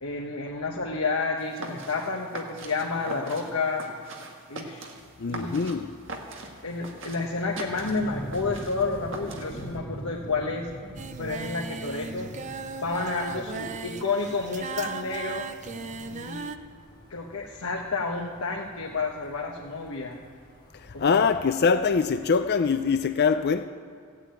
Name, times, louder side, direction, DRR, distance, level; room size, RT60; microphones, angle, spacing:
voice 1, 0.0-3.9 4.5-4.9 5.3-5.6 6.6-10.7 11.2-12.3 12.7-15.5 16.1-16.6 17.1-20.2 20.9-21.2, left 4 dB, 75° left, 1.2 m, -30 dB
sound 1, 1.4-9.8, right 2 dB, 60° right, 1.7 m, -42 dB
voice 2, 5.2-5.9 20.7-23.7, left 5 dB, 45° left, 0.4 m, -23 dB
sound 2, 7.7-22.1, equal, 20° left, 3.5 m, -44 dB
Singing, 11.0-16.6, right 5 dB, 35° right, 0.5 m, -37 dB
15.5 x 8.2 x 8.9 m
head